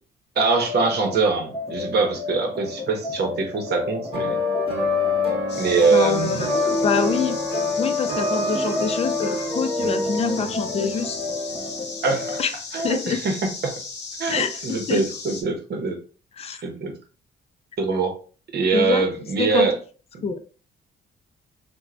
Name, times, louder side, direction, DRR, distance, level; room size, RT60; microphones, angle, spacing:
voice 1, 0.4-4.4 5.5-6.4 12.0-12.4 12.7-13.7 14.2-16.0 16.6-16.9 17.8-18.1 18.5-19.7, right 4 dB, 55° right, 4 dB, 0.8 m, -23 dB
sound 1, 0.6-12.5, left 2 dB, 15° left, 0.8 m, -31 dB
sound 2, 4.1-11.7, left 3 dB, 25° right, 1.1 m, -26 dB
sound 3, 5.5-15.4, left 4 dB, 60° left, 0.8 m, -36 dB
voice 2, 5.9-7.4 7.8-11.3 12.4-12.5 12.8-13.2 14.3-15.0 16.4-16.6 18.7-19.0 19.4-19.7 20.2-20.4, left 6 dB, 30° left, 8 dB, 0.4 m, -26 dB
2.9 x 2.2 x 2.4 m, 0.37 s
cardioid pair, 90°, 20 cm